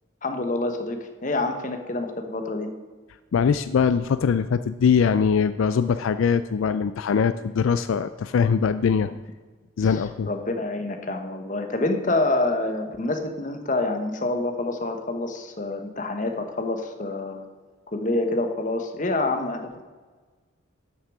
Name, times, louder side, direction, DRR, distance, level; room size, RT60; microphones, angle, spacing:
voice 1, 0.2-2.7 9.8-17.4 17.9-19.8, left 2 dB, 40° left, 5 dB, 1.1 m, -27 dB
voice 2, 3.3-9.1 9.8-10.3, left 6 dB, 75° left, 12 dB, 0.4 m, -22 dB
12.5 x 6.5 x 4.8 m, 1.4 s
head